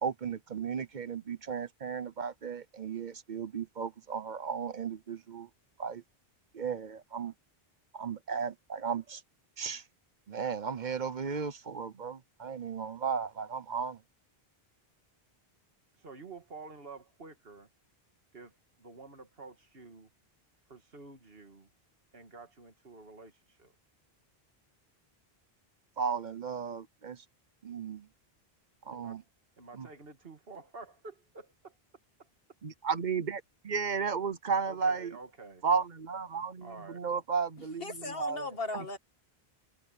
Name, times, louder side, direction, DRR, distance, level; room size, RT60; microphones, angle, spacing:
voice 1, 0.0-5.5 5.8-6.0 6.5-7.3 7.9-9.2 9.6-9.8 10.3-14.0 26.0-27.2 27.6-28.1 28.8-29.2 29.7-29.9 32.6-35.2 35.6-38.5 38.7-38.8, right 6 dB, 50° right, 0.9 m, -34 dB
voice 2, 15.9-17.7 18.3-20.1 20.7-21.7 22.1-23.7 28.9-29.2 29.6-31.7 32.2-32.3 34.6-35.6 36.6-37.0, right 3 dB, 70° right, 2.2 m, -49 dB
voice 3, 37.6-39.0, left 2 dB, 65° left, 2.2 m, -38 dB
omnidirectional pair, 1.0 m